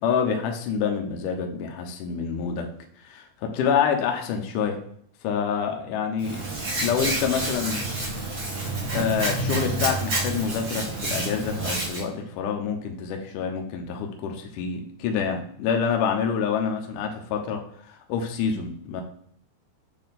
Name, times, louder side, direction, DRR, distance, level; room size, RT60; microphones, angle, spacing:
voice 1, 0.0-2.7 3.0-4.8 5.2-6.4 6.8-7.8 8.9-17.6 17.9-19.0, left 7 dB, 85° left, 3 dB, 1.8 m, -27 dB
Hands, 6.2-12.0, right 2 dB, 60° right, 1.0 m, -28 dB
8.8 x 3.4 x 4.1 m, 0.66 s
omnidirectional pair, 5.0 m